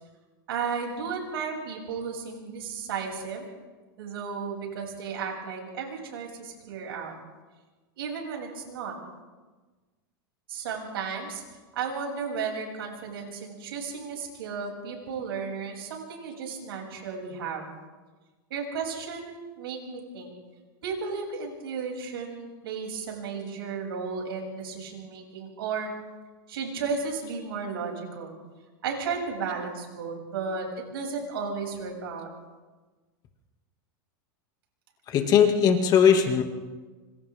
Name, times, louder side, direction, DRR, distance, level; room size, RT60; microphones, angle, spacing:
voice 1, 0.5-3.5 4.0-7.1 8.0-8.9 10.5-11.4 11.7-17.7 18.5-20.3 20.8-25.9 26.5-28.3 28.8-32.3, right 5 dB, 85° right, 0 dB, 7.6 m, -34 dB
voice 2, 35.1-36.4, left 7 dB, 30° left, 4 dB, 2.4 m, -19 dB
27.5 x 26.0 x 3.8 m, 1.3 s
supercardioid pair, 145°, 12 cm